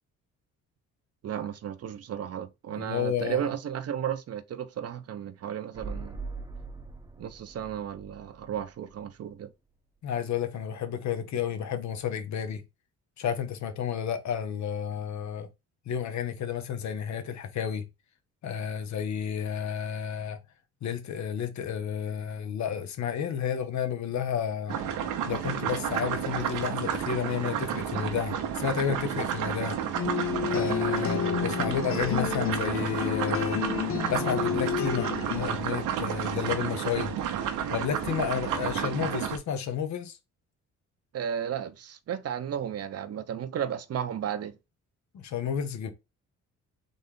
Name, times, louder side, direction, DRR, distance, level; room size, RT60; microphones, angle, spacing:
voice 1, 1.2-6.2 7.2-9.5 31.0-31.2 41.1-44.5, right 9 dB, 55° right, 0.8 m, -34 dB
voice 2, 2.7-3.5 10.0-12.6 13.2-15.5 15.9-17.9 18.4-20.4 20.8-24.8 25.3-29.8 30.4-33.6 34.1-37.2 37.7-40.2 45.1-45.9, left 8 dB, 65° left, 1.1 m, -31 dB
sound 1, 5.7-9.5 9.8-9.9, right 3 dB, 10° right, 0.9 m, -42 dB
sound 2, 24.7-39.4, right 9 dB, 90° right, 1.0 m, -31 dB
sound 3, 29.9-35.6, left 9 dB, 45° left, 0.5 m, -30 dB
4.0 x 3.3 x 3.7 m
cardioid pair, 90°, 30 cm